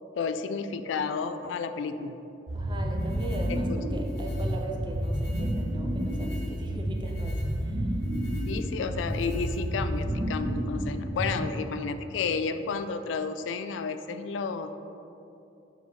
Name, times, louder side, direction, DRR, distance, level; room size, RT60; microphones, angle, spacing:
voice 1, 0.2-2.2 3.7-3.8 8.5-14.7, left 5 dB, 75° left, 10 dB, 0.3 m, -31 dB
voice 2, 2.5-7.9, right 1 dB, 25° right, 2 dB, 0.6 m, -39 dB
sound 1, 2.5-11.7, right 1 dB, 90° right, 0.8 m, -31 dB
sound 2, 2.9-10.1, left 1 dB, 60° left, 1.2 m, -38 dB
4.7 x 4.0 x 5.7 m, 2.8 s
head